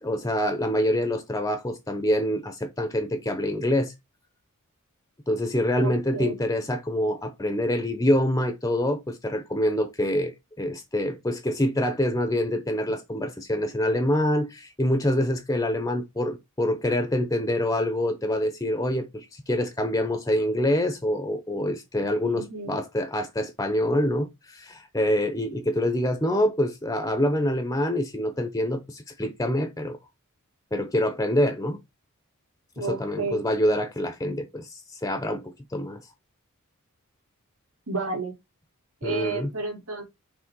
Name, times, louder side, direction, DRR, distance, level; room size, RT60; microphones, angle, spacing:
voice 1, 0.0-3.9 5.3-30.0 30.7-31.8 32.8-36.0 39.0-39.5, left 1 dB, 15° left, 0.7 m, -26 dB
voice 2, 5.8-6.3 22.2-22.7 32.8-33.5 37.9-38.3 39.0-40.0, right 3 dB, 70° right, 2.5 m, -31 dB
5.9 x 3.5 x 4.6 m
head